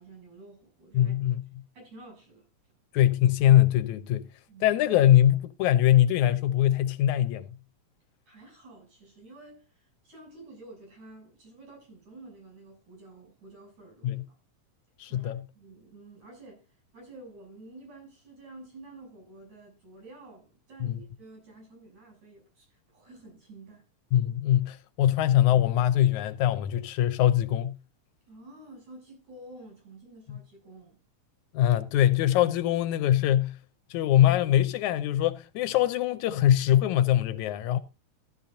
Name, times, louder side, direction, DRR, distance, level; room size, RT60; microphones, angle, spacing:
voice 1, 0.0-1.2 1.7-2.5 4.5-4.7 8.3-14.2 15.1-16.7 16.9-23.9 28.3-31.0, right 2 dB, 70° right, 9.0 m, -50 dB
voice 2, 0.9-1.4 2.9-4.2 4.6-7.5 14.0-14.2 15.0-15.4 20.8-21.0 24.1-27.8 30.3-30.4 31.5-33.6 33.9-37.8, left 12 dB, 80° left, 2.1 m, -22 dB
14.5 x 12.0 x 2.7 m
omnidirectional pair, 3.4 m